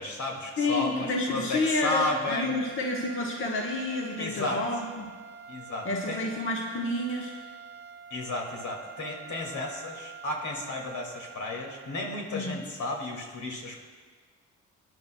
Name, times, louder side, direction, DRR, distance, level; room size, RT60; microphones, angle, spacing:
voice 1, 0.0-2.5 4.2-4.6 5.5-6.2 8.1-13.8, left 2 dB, 70° left, 0 dB, 2.3 m, -33 dB
voice 2, 0.6-5.1 5.8-7.3 12.3-12.6, left 2 dB, 45° left, -1 dB, 1.2 m, -30 dB
sound 1, 0.8-12.4, right 7 dB, 35° right, 0.8 m, -46 dB
21.5 x 10.5 x 2.3 m, 1.5 s
cardioid pair, 90°, 30 cm